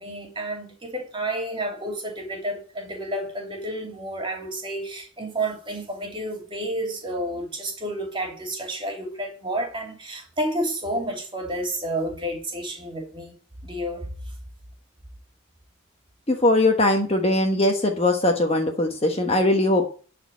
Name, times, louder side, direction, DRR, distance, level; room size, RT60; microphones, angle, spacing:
voice 1, 0.0-13.3 13.6-14.1, right 1 dB, 25° right, 2.9 m, -30 dB
voice 2, 16.3-19.8, left 1 dB, 30° left, 1.2 m, -20 dB
12.0 x 4.4 x 8.2 m
head